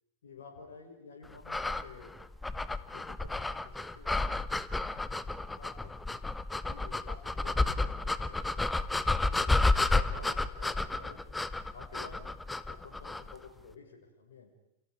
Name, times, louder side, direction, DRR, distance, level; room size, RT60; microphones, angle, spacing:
voice 1, 0.2-2.1 2.9-4.2 5.2-5.9 6.6-9.6 9.9-11.3 11.7-12.4 12.6-14.5, left 5 dB, 65° left, 2 dB, 5.7 m, -51 dB
sound 1, 1.5-13.4, left 2 dB, 10° left, 1.1 m, -31 dB
29.5 x 29.0 x 5.0 m, 0.85 s
figure-of-eight pair, 90°, 0 cm